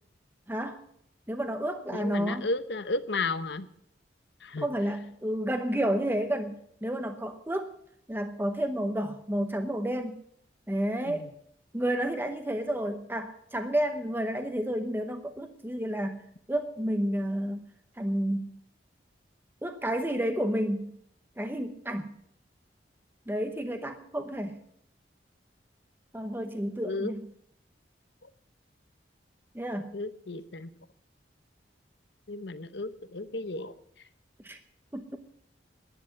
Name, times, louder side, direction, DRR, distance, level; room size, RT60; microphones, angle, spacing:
voice 1, 0.5-0.8 1.3-2.5 4.6-6.5 6.8-7.7 8.1-10.2 10.7-11.3 11.7-17.6 18.0-18.5 19.6-20.9 21.4-22.1 23.3-24.6 26.1-27.2 29.5-29.9 34.4-34.6 34.9-35.2, right 1 dB, 10° right, 7 dB, 0.9 m, -30 dB
voice 2, 1.9-3.7 4.4-4.7 11.1-11.3 26.8-27.1 29.9-30.7 32.3-33.8, left 3 dB, 70° left, 12 dB, 1.0 m, -33 dB
11.0 x 10.5 x 9.7 m, 0.69 s
head